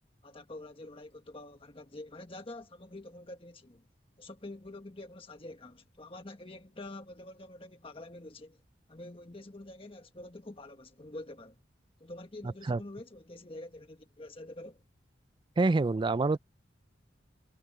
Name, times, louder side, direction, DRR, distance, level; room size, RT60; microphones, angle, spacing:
voice 1, 0.2-3.9 4.2-8.6 8.9-11.6 12.0-14.8, left 2 dB, 30° left, 1.4 m, -46 dB
voice 2, 15.6-16.4, right 3 dB, 25° right, 0.3 m, -26 dB
head